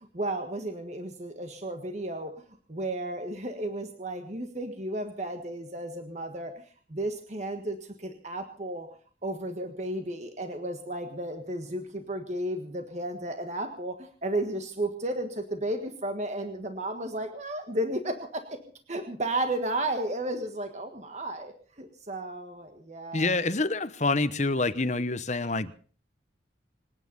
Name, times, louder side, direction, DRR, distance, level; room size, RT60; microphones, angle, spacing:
voice 1, 0.1-2.3 2.7-6.6 6.9-8.9 9.2-18.6 18.9-23.3, right 1 dB, 40° right, 1.5 m, -33 dB
voice 2, 23.1-25.7, left 3 dB, 40° left, 1.0 m, -27 dB
26.0 x 9.8 x 5.4 m
head